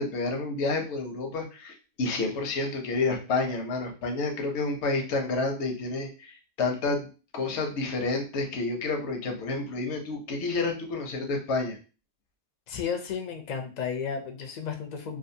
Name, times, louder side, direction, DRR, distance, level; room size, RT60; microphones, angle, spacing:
voice 1, 0.0-7.1 7.3-11.8, left 3 dB, 80° left, 3 dB, 1.0 m, -29 dB
voice 2, 12.7-15.2, left 6 dB, 55° left, 5 dB, 0.5 m, -33 dB
2.6 x 2.3 x 2.6 m, 0.34 s
omnidirectional pair, 1.1 m